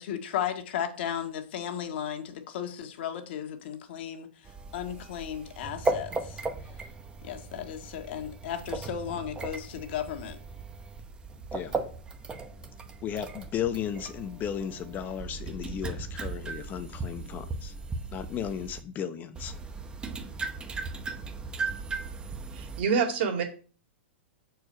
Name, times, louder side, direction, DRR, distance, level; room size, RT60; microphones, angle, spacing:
voice 1, 0.0-4.3 4.7-6.4 7.2-10.4, left 9 dB, 60° left, 1.4 m, -35 dB
sound 1, 4.4-18.8 19.4-22.8, right 3 dB, 15° right, 0.9 m, -37 dB
voice 2, 13.0-17.8 18.1-19.5, left 9 dB, 30° left, 0.8 m, -35 dB
voice 3, 22.5-23.4, right 6 dB, 60° right, 2.5 m, -26 dB
6.2 x 4.7 x 6.4 m
hypercardioid pair, 125°, 6 cm